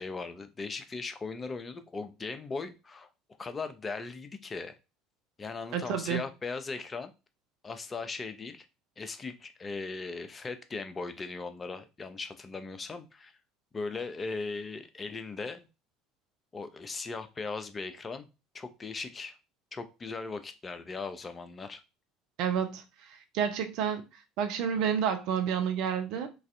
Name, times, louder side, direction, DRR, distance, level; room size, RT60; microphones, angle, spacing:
voice 1, 0.0-3.1 3.4-4.7 5.4-7.1 7.6-8.7 9.0-13.3 13.7-15.7 16.5-18.3 18.5-19.3 19.7-21.8, left 4 dB, 25° left, 0.5 m, -38 dB
voice 2, 5.7-6.2 22.4-22.8 23.3-24.0 24.4-26.3, right 8 dB, 55° right, 0.5 m, -29 dB
3.1 x 2.4 x 2.5 m
figure-of-eight pair, 65°, 0 cm